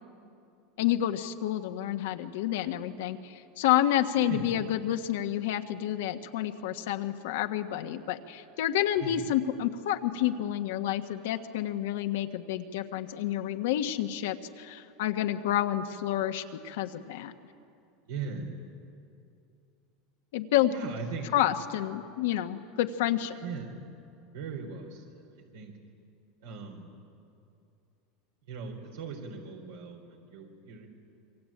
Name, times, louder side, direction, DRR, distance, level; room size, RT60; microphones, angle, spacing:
voice 1, 0.8-17.3 20.3-20.7 21.3-23.4, left 12 dB, 80° left, 6 dB, 1.5 m, -29 dB
voice 2, 4.3-4.6 9.0-9.3 18.1-18.7 20.7-21.4 23.4-23.8 24.3-25.7 26.4-27.0 28.4-30.9, right 4 dB, 85° right, 0 dB, 4.1 m, -39 dB
26.5 x 23.5 x 8.8 m, 2.5 s
supercardioid pair, 120°, 0 cm